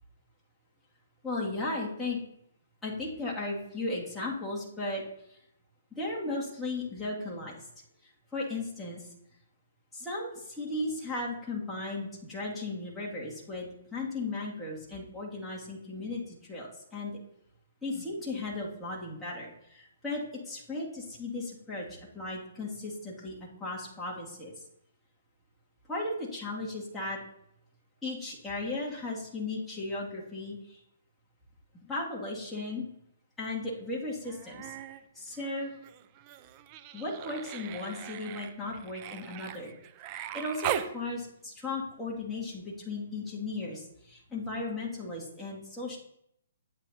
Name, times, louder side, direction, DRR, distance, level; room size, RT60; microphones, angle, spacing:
voice 1, 1.2-2.2 2.8-5.0 5.3-5.4 5.9-7.7 8.3-9.0 9.9-17.2 17.8-24.5 25.9-27.2 28.0-30.8 31.7-32.9 33.4-34.7 35.1-35.7 36.9-39.7 40.1-46.0, left 2 dB, 5° left, -5 dB, 2.2 m, -36 dB
Human voice, 34.2-35.0 35.3-40.9 42.5-42.6, right 11 dB, 30° right, 0.5 m, -39 dB
11.0 x 8.3 x 2.8 m, 0.75 s
hypercardioid pair, 145°, 0 cm